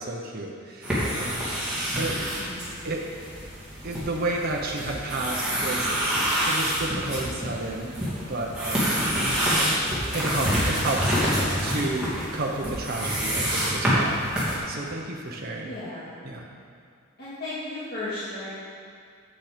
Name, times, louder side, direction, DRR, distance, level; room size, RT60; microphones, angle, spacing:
voice 1, 0.0-1.6 2.0-2.1 2.8-3.0 3.8-5.9 6.5-9.0 10.1-14.2 14.7-15.7 16.2-16.4, right 2 dB, 45° right, -2 dB, 0.8 m, -31 dB
sound 1, 0.8-14.6, equal, 5° right, 2.5 m, -27 dB
voice 2, 2.2-2.9 15.6-16.2 17.2-18.5, left 2 dB, 45° left, -12 dB, 2.0 m, -35 dB
8.9 x 7.5 x 5.1 m, 2.3 s
head